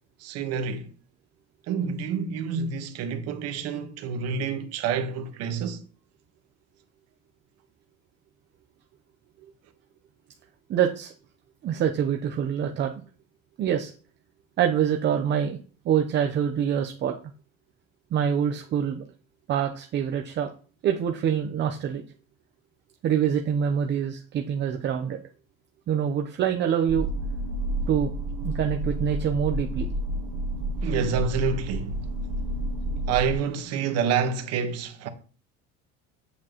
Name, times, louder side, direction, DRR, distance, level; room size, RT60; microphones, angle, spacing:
voice 1, 0.2-0.9 1.7-5.8 30.8-32.0 33.1-35.1, right 6 dB, 55° right, 1.4 m, -28 dB
voice 2, 10.7-11.1 11.6-12.9 13.6-13.9 14.6-15.6 15.8-17.2 18.1-19.0 19.5-20.5 20.8-22.0 23.0-25.2 25.9-27.1 27.9-28.1 28.4-29.9, right 8 dB, 35° right, 0.7 m, -25 dB
sound 1, 26.9-33.3, right 1 dB, 75° right, 1.2 m, -30 dB
8.4 x 7.4 x 3.0 m
cardioid pair, 150°, 30 cm